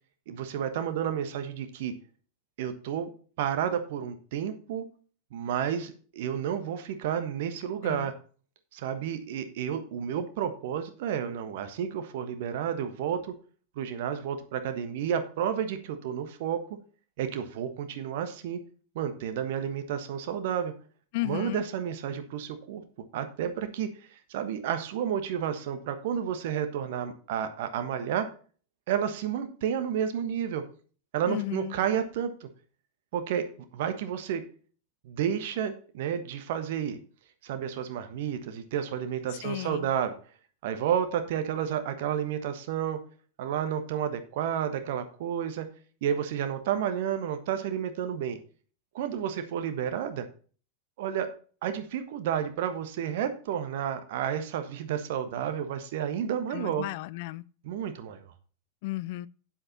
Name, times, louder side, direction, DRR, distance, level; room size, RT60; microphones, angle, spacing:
voice 1, 0.3-1.9 2.6-3.1 3.4-4.8 5.3-8.1 8.7-13.4 13.7-16.6 17.2-18.6 18.9-20.7 21.2-22.8 23.1-28.3 28.9-30.6 31.1-32.5 33.1-33.4 33.7-34.4 35.0-37.0 37.4-40.1 40.6-43.0 43.4-45.7 46.0-48.4 48.9-50.2 51.0-51.3 51.6-56.9 57.6-58.3, right 9 dB, 50° right, 1.3 m, -31 dB
voice 2, 21.1-21.6 31.3-31.7 39.3-39.9 56.5-57.4 58.8-59.3, left 18 dB, 50° left, 0.4 m, -34 dB
8.8 x 7.9 x 4.2 m
figure-of-eight pair, 90°, 0 cm